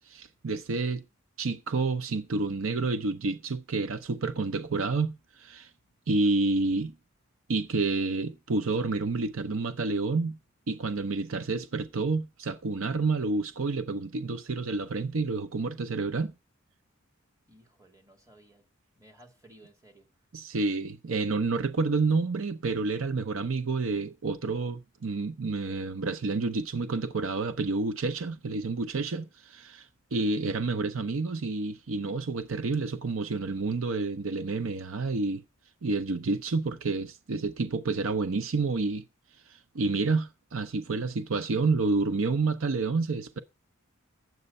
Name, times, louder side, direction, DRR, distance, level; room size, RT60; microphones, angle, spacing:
voice 1, 0.1-1.0 1.4-5.7 6.1-6.9 7.5-10.4 10.7-16.3 20.3-35.4 35.8-39.0 39.5-43.4, right 3 dB, 70° right, 0.7 m, -29 dB
voice 2, 17.5-18.7 19.0-20.1, right 1 dB, 15° right, 2.3 m, -56 dB
9.4 x 7.8 x 5.4 m
head